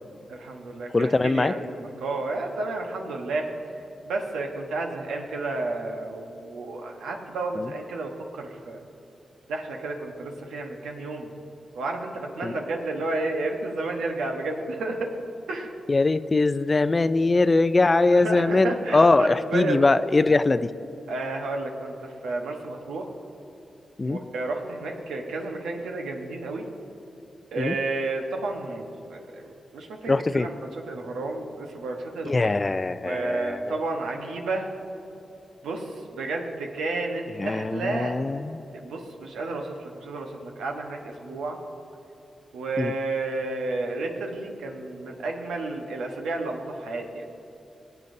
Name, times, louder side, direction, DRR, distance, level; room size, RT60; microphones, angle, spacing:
voice 1, 0.3-3.5 4.1-8.8 9.5-11.3 11.7-15.1 15.5-15.7 18.1-19.8 21.1-23.1 24.0-26.7 27.5-30.5 30.9-32.4 33.0-34.7 35.6-38.1 38.7-41.6 42.5-47.2, right 2 dB, 90° right, 2 dB, 1.0 m, -31 dB
voice 2, 0.9-1.5 7.6-7.7 12.4-12.6 15.9-20.7 24.0-24.2 27.6-27.7 30.1-30.5 32.3-33.8 37.4-38.6 42.8-42.9, left 3 dB, 40° left, 13 dB, 0.4 m, -22 dB
19.5 x 8.0 x 2.6 m, 2.9 s
supercardioid pair, 45°, 0 cm